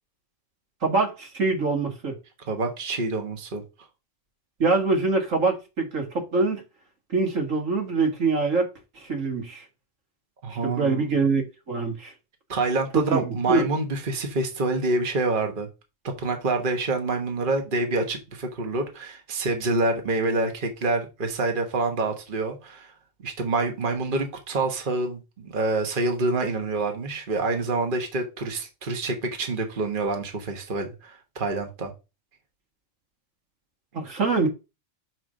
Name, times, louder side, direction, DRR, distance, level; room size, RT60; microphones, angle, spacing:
voice 1, 0.8-2.1 4.6-6.6 7.1-8.7 9.0-9.6 10.5-12.1 12.9-13.7 33.9-34.5, right 3 dB, 80° right, 2.3 m, -24 dB
voice 2, 2.5-3.6 10.4-11.1 12.5-15.7 16.2-22.9 23.2-31.9, right 2 dB, 40° right, 1.4 m, -27 dB
6.2 x 4.6 x 5.0 m
omnidirectional pair, 1.3 m